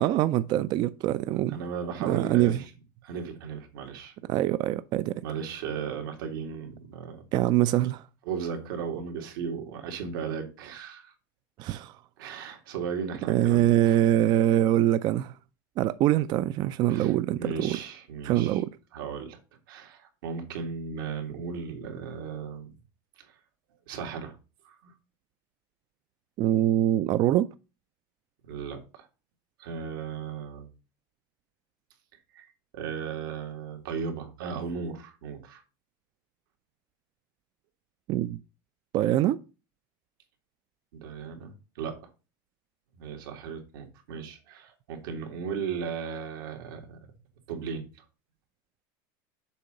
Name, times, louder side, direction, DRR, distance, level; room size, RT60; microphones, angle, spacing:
voice 1, 0.0-1.6 2.0-2.6 4.3-5.2 7.3-8.0 11.6-12.0 13.3-15.3 15.8-17.8 18.2-18.7 26.4-27.5 38.1-38.4 38.9-39.4, right 13 dB, 40° right, 0.3 m, -24 dB
voice 2, 1.5-2.7 3.0-4.1 5.2-7.2 8.3-11.1 12.2-14.0 16.9-18.6 18.9-19.4 19.7-22.8 23.2-23.3 23.9-24.3 24.6-24.9 28.4-29.1 29.6-30.7 32.3-32.5 32.7-35.6 40.9-42.1 43.0-47.0 47.5-47.9, right 6 dB, 85° right, 2.3 m, -36 dB
7.0 x 3.8 x 6.5 m
supercardioid pair, 145°, 11 cm